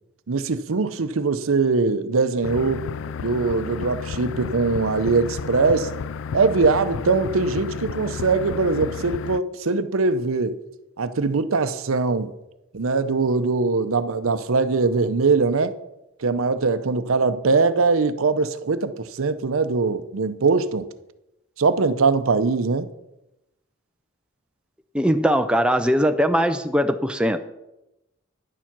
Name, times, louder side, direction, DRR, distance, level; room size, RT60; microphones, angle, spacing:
voice 1, 0.3-2.9 3.2-5.9 6.3-10.6 11.0-12.3 12.7-15.7 16.2-20.8 21.6-22.9, right 4 dB, 80° right, 0.6 m, -21 dB
sound 1, 2.4-9.4, left 6 dB, 65° left, 0.3 m, -32 dB
voice 2, 24.9-27.5, equal, 5° right, 0.5 m, -20 dB
10.0 x 7.3 x 5.9 m
head